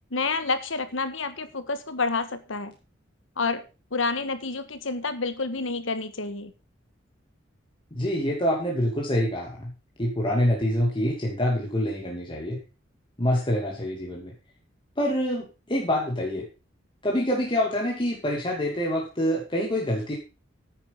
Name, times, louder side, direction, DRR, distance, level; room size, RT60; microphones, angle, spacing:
voice 1, 0.1-2.7 3.4-3.6 3.9-6.5, left 4 dB, 90° left, 11 dB, 1.6 m, -29 dB
voice 2, 7.9-9.7 10.0-12.6 13.2-14.3 15.0-16.5 17.0-20.1, equal, 25° left, -2 dB, 2.7 m, -26 dB
10.5 x 9.4 x 5.4 m, 0.31 s
head